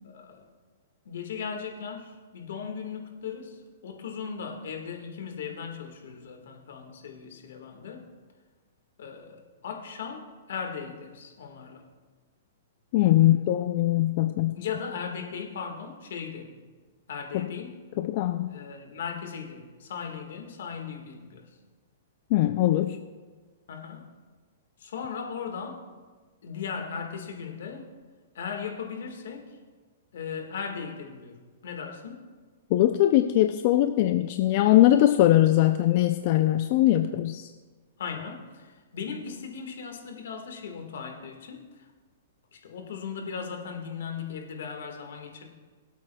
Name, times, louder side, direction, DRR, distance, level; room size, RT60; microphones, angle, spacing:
voice 1, 0.0-0.5 1.1-8.1 9.0-11.9 13.2-13.4 14.5-16.5 17.1-17.8 18.5-21.5 23.7-24.1 24.8-25.9 26.4-27.9 28.4-29.6 30.1-32.2 38.0-41.9 42.5-45.5, left 6 dB, 75° left, 3 dB, 1.6 m, -37 dB
voice 2, 12.9-14.6 17.3-17.5 18.0-18.5 22.3-23.0 32.7-37.5, left 14 dB, 45° left, 8 dB, 0.4 m, -21 dB
22.0 x 8.2 x 2.3 m, 1.4 s
hypercardioid pair, 150°, 0 cm